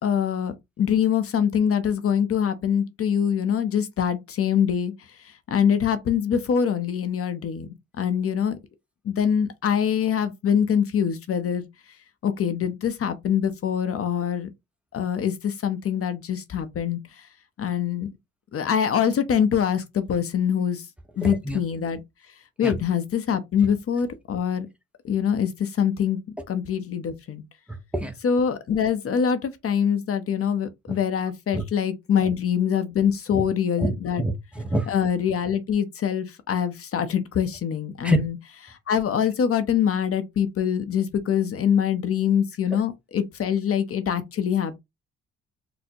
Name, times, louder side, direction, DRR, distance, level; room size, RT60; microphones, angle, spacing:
voice 1, 0.0-8.6 9.0-11.7 12.2-14.5 14.9-17.3 17.6-18.1 18.5-20.9 21.2-22.0 22.6-24.7 25.0-26.2 26.5-27.4 28.2-34.2 34.9-38.4 38.7-44.7, left 8 dB, 50° left, 0.6 m, -24 dB
voice 2, 27.7-28.1 31.5-31.6 33.3-33.4 33.8-33.9 34.2-34.9 38.0-38.2, right 1 dB, 5° right, 0.7 m, -26 dB
4.2 x 2.0 x 2.7 m
cardioid pair, 90°, 30 cm